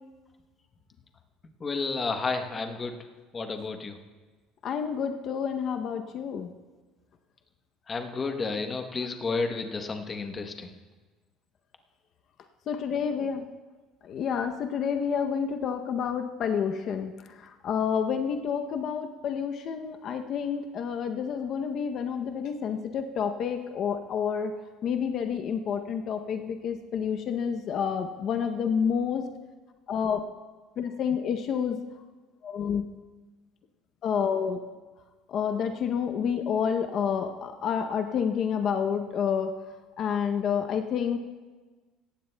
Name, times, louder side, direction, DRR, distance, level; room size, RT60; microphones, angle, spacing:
voice 1, 1.6-3.0 3.3-4.0 7.9-10.7, left 4 dB, 20° left, 6 dB, 0.9 m, -31 dB
voice 2, 4.6-6.5 12.7-13.4 14.0-24.5 24.8-29.2 29.9-30.2 30.8-31.8 32.4-32.8 34.0-34.6 35.3-39.5 40.0-41.2, left 7 dB, 45° left, 6 dB, 0.6 m, -29 dB
17.5 x 15.0 x 2.2 m, 1.3 s
cardioid pair, 150°, 0 cm